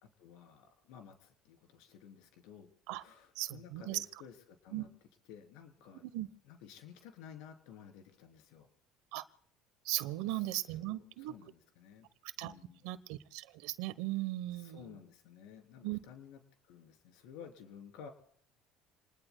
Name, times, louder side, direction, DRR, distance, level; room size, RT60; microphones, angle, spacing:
voice 1, 0.0-4.9 5.3-6.1 6.4-8.7 10.2-12.1 12.4-12.9 14.5-18.1, left 8 dB, 80° left, 5 dB, 3.4 m, -54 dB
voice 2, 3.4-4.0 4.7-4.8 6.1-6.3 9.1-9.2 9.8-11.3 12.4-12.5 12.8-14.9 15.8-16.0, right 17 dB, 80° right, 15 dB, 1.0 m, -37 dB
29.0 x 20.5 x 2.3 m, 0.64 s
supercardioid pair, 85°, 0 cm